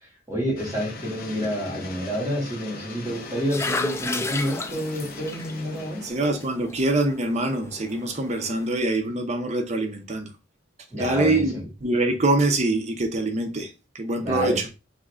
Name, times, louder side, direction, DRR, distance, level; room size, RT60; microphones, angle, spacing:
voice 1, 0.0-6.0 10.9-11.6 14.2-14.6, equal, 15° right, 2.4 m, -29 dB
sound 1, 0.6-6.1, left 3 dB, 50° left, 0.8 m, -40 dB
sound 2, 3.1-8.7, left 3 dB, 15° left, 0.3 m, -34 dB
voice 2, 6.0-10.3 10.9-11.5 11.8-14.7, right 2 dB, 35° right, 0.7 m, -24 dB
3.7 x 3.1 x 3.7 m
head